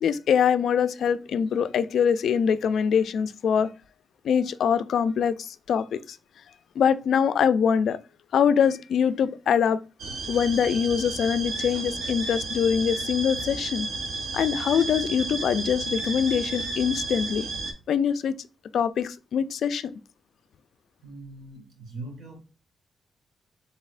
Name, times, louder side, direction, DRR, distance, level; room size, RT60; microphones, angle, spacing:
voice 1, 0.0-3.7 4.2-6.2 6.8-8.0 8.3-9.8 10.3-13.9 14.3-17.5 17.9-18.3 18.7-19.9, left 7 dB, 75° left, 0.3 m, -23 dB
sound 1, 10.0-17.7, right 3 dB, 90° right, 0.8 m, -32 dB
voice 2, 21.0-22.4, right 2 dB, 65° right, 1.7 m, -41 dB
4.1 x 3.8 x 2.5 m
cardioid pair, 120°, 0 cm